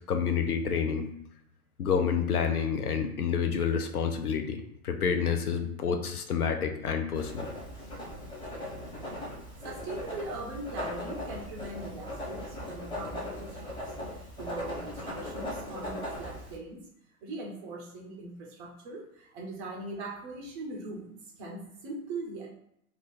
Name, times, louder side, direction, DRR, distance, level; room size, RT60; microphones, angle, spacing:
voice 1, 0.1-1.1 1.8-7.5, left 6 dB, 85° left, 6 dB, 0.6 m, -29 dB
Writing, 7.1-16.6, left 1 dB, 10° left, 1.0 m, -39 dB
voice 2, 9.6-16.9 17.2-22.5, right 2 dB, 20° right, -1 dB, 0.3 m, -41 dB
2.4 x 2.4 x 3.9 m, 0.75 s
figure-of-eight pair, 100°, 43 cm